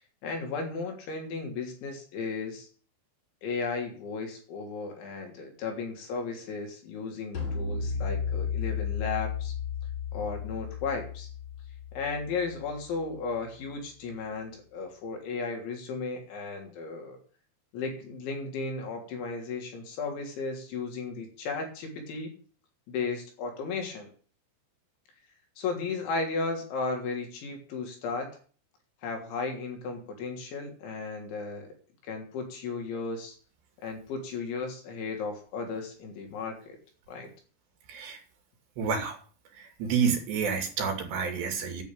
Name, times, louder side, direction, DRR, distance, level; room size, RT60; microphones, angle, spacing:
voice 1, 0.2-2.7 3.4-9.5 10.1-11.3 12.0-17.2 17.7-22.3 22.9-24.1 25.6-28.3 29.0-31.7 32.0-33.4 33.8-36.8 37.1-37.3, left 4 dB, 65° left, 3 dB, 5.4 m, -35 dB
sound 1, 7.3-12.8, left 6 dB, 40° left, 3.7 m, -33 dB
voice 2, 37.9-38.2 38.8-39.2 39.6-41.8, right 6 dB, 60° right, 5 dB, 4.4 m, -29 dB
10.5 x 8.3 x 9.0 m, 0.42 s
omnidirectional pair, 6.0 m